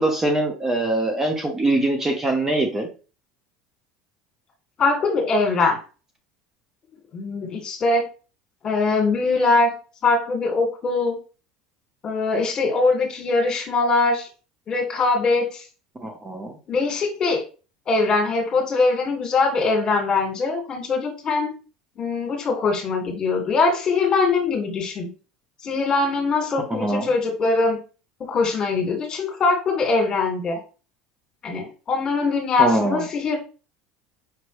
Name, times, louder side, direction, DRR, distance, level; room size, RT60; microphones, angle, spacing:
voice 1, 0.0-2.9 16.0-16.5 26.7-27.1 32.6-33.0, right 2 dB, 20° right, 3 dB, 1.0 m, -23 dB
voice 2, 4.8-5.8 7.1-8.1 8.6-9.7 10.0-11.2 12.0-14.3 14.7-15.6 16.7-17.4 17.9-21.5 22.0-25.1 25.6-27.8 28.2-30.6 31.4-33.4, left 3 dB, 35° left, 2 dB, 1.9 m, -22 dB
5.3 x 3.0 x 3.1 m, 0.35 s
supercardioid pair, 95°, 2 cm